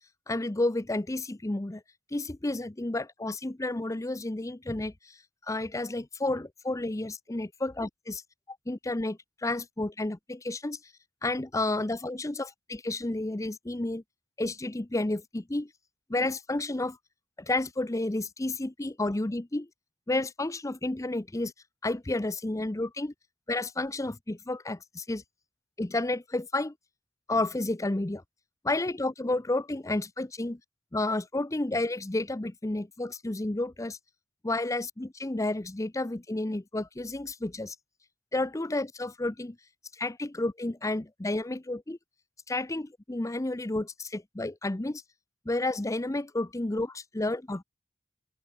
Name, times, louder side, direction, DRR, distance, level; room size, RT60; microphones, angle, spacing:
voice 1, 0.3-1.8 2.1-8.2 8.5-10.8 11.2-14.0 14.4-15.7 16.1-17.0 17.4-19.7 20.1-21.5 21.8-23.1 23.5-25.2 25.8-26.7 27.3-28.2 28.6-30.6 30.9-34.0 34.4-37.8 38.3-39.6 39.9-42.0 42.5-45.0 45.5-47.6, left 2 dB, 20° left, 0.6 m, -31 dB
open air
head